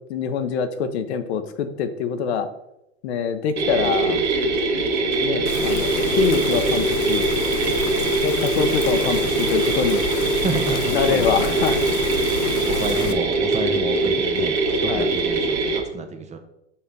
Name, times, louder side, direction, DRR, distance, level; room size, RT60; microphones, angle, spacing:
voice 1, 0.1-2.5 3.0-4.2 5.2-7.3 8.2-10.1 10.9-11.8 14.9-15.1, left 7 dB, 70° left, 9 dB, 0.8 m, -24 dB
sound 1, 3.6-15.8, right 3 dB, 75° right, 1.5 m, -22 dB
Rain, 5.5-13.1, left 9 dB, 35° left, 0.6 m, -30 dB
voice 2, 10.4-12.0 12.6-16.4, right 4 dB, 20° right, 6 dB, 0.6 m, -30 dB
5.6 x 3.3 x 5.2 m, 0.83 s
hypercardioid pair, 100°, 34 cm